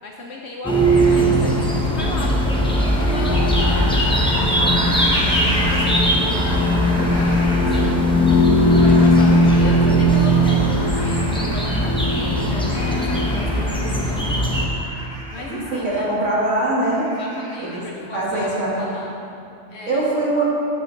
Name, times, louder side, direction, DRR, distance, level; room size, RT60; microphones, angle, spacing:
voice 1, 0.0-2.3 2.9-5.1 5.4-7.9 8.6-14.3 15.3-16.1 17.1-19.1 19.7-20.1, left 2 dB, 65° left, -1 dB, 1.0 m, -34 dB
sound 1, 0.6-14.7, equal, 5° left, 0.8 m, -18 dB
sound 2, 1.6-18.7, equal, 40° right, 1.3 m, -34 dB
Wind instrument woodwind instrument, 5.6-10.8, right 1 dB, 50° left, 1.3 m, -36 dB
voice 2, 15.5-17.1 17.6-17.8 18.1-18.9 19.9-20.4, right 2 dB, 75° right, -6 dB, 2.1 m, -22 dB
9.0 x 8.5 x 3.2 m, 2.6 s
omnidirectional pair, 1.2 m